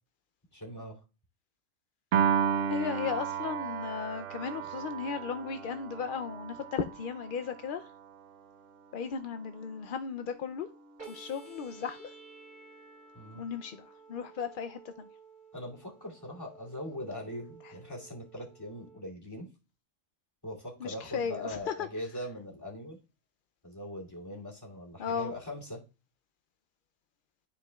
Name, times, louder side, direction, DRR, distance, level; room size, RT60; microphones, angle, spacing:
voice 1, 0.5-1.0 13.1-13.5 15.5-19.5 20.4-23.0 23.6-25.8, left 1 dB, 15° left, 2.5 m, -41 dB
Piano, 2.1-8.5, right 8 dB, 75° right, 1.0 m, -33 dB
voice 2, 2.7-7.9 8.9-10.7 11.1-12.1 13.3-15.1 20.8-21.9 25.0-25.3, left 6 dB, 65° left, 0.5 m, -36 dB
sound 1, 11.0-19.0, right 5 dB, 45° right, 3.2 m, -53 dB
13.0 x 4.8 x 2.3 m
omnidirectional pair, 1.3 m